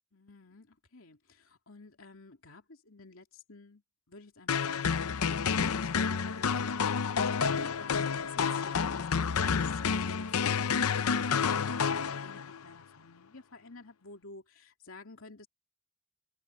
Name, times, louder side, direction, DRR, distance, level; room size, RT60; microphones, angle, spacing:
voice 1, 0.1-3.8 4.1-15.5, left 3 dB, 70° left, 2.7 m, -52 dB
sound 1, 4.5-12.6, left 6 dB, 90° left, 0.6 m, -29 dB
head